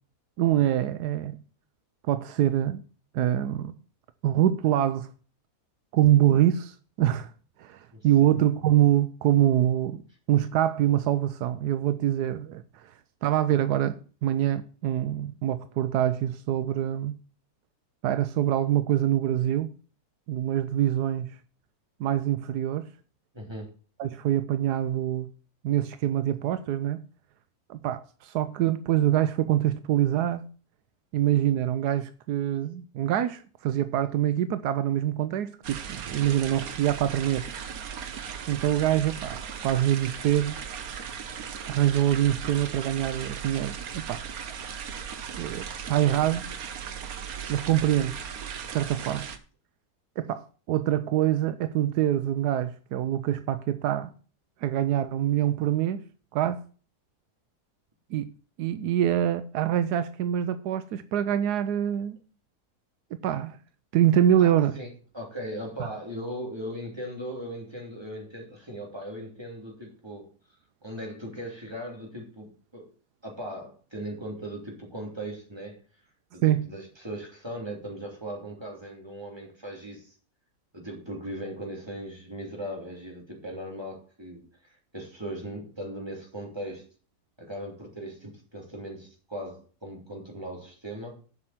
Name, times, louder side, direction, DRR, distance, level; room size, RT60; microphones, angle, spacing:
voice 1, 0.4-1.4 2.1-2.8 3.1-3.7 4.2-5.1 5.9-7.3 7.6-10.0 10.3-12.6 13.2-17.2 18.0-19.7 20.3-21.4 22.0-22.9 24.0-25.3 25.6-27.0 27.7-30.4 31.1-37.5 38.5-40.6 41.7-44.2 45.3-46.4 47.5-48.2 48.7-49.3 50.2-54.1 54.6-56.0 56.3-56.6 58.1-58.3 58.6-62.2 63.1-63.6 63.9-64.8 76.4-76.6, right 11 dB, 90° right, 1.2 m, -25 dB
voice 2, 7.9-8.3 23.3-23.7 64.4-72.9 73.2-75.8 76.3-80.2 80.7-86.9 87.4-91.2, equal, 15° right, 2.9 m, -38 dB
sound 1, 35.6-49.4, right 7 dB, 65° right, 1.4 m, -37 dB
7.7 x 5.8 x 7.7 m
omnidirectional pair, 1.7 m